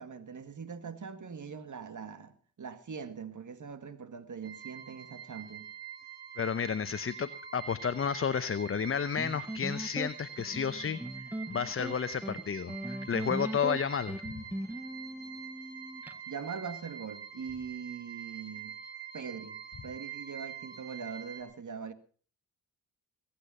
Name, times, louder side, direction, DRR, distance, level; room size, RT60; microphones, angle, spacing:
voice 1, 0.0-5.7 16.3-18.8 19.1-21.9, right 6 dB, 45° right, 2.0 m, -42 dB
sound 1, 4.4-21.4, right 8 dB, 75° right, 3.8 m, -46 dB
voice 2, 6.4-11.0 11.5-14.2, left 7 dB, 30° left, 0.8 m, -32 dB
sound 2, 9.2-16.2, right 1 dB, 5° right, 0.6 m, -39 dB
21.5 x 8.6 x 5.6 m
supercardioid pair, 50°, 41 cm